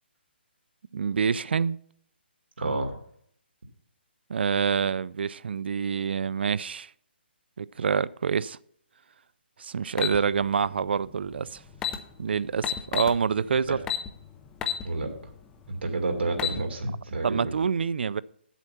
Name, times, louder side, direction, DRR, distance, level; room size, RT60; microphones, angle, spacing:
voice 1, 0.9-1.8 4.3-6.9 7.6-8.6 9.6-11.6 12.2-13.8 17.2-18.2, right 6 dB, 65° right, 0.4 m, -26 dB
voice 2, 2.6-2.9 13.7-13.8 14.8-15.1 15.7-17.5, right 2 dB, 85° right, 2.2 m, -29 dB
sound 1, 10.0-10.2 11.4-11.5 11.7-12.0 12.6-13.2 13.9-14.1 14.6-14.8 15.3-15.4 16.2-16.6, left 10 dB, 10° left, 0.5 m, -28 dB
8.0 x 7.4 x 5.7 m
hypercardioid pair, 170°, 6 cm